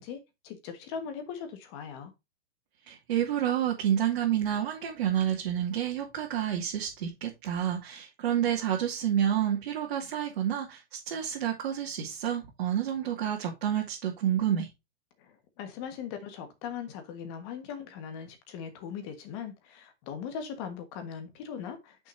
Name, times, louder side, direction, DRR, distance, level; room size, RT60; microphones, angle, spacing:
voice 1, 0.0-2.1 15.2-22.0, left 7 dB, 25° left, 1.5 m, -40 dB
voice 2, 2.9-14.7, right 10 dB, 50° right, 2.4 m, -29 dB
9.7 x 6.1 x 2.7 m
hypercardioid pair, 180°, 34 cm